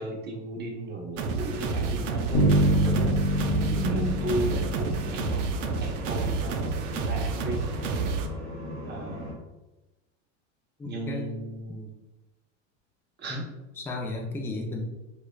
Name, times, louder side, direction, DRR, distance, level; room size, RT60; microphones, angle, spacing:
voice 1, 0.0-3.4 3.7-5.5 5.8-6.6 7.0-7.7 8.9-9.4 10.8-11.9 13.2-13.4, right 2 dB, 30° right, 0 dB, 0.9 m, -35 dB
sound 1, 1.2-8.3, right 4 dB, 85° right, 0.5 m, -30 dB
sound 2, 1.4-9.3, left 1 dB, 45° right, 1.5 m, -38 dB
sound 3, 2.3-6.1, equal, 35° left, 0.9 m, -26 dB
voice 2, 10.8-11.3 13.3-13.5 13.8-14.8, left 2 dB, 5° left, -1 dB, 0.4 m, -33 dB
4.6 x 2.4 x 2.2 m, 1.1 s
supercardioid pair, 110°, 36 cm